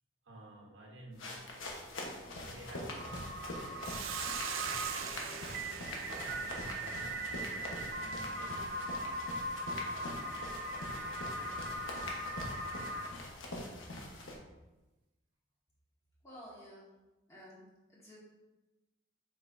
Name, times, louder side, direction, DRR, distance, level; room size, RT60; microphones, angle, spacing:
voice 1, 0.2-2.1 2.4-4.3 6.1-10.3 10.9-12.0, right 1 dB, 70° right, -1 dB, 1.3 m, -55 dB
sound 1, 1.1-14.3, left 1 dB, 80° left, 1.2 m, -44 dB
sound 2, 3.0-13.1, right 1 dB, 45° right, 0.7 m, -40 dB
Hiss, 3.8-8.3, right 8 dB, 85° right, 0.5 m, -43 dB
voice 2, 16.2-16.9 17.3-17.6 17.9-18.2, equal, 15° left, -6 dB, 1.8 m, -52 dB
7.5 x 5.3 x 2.7 m, 1.1 s
head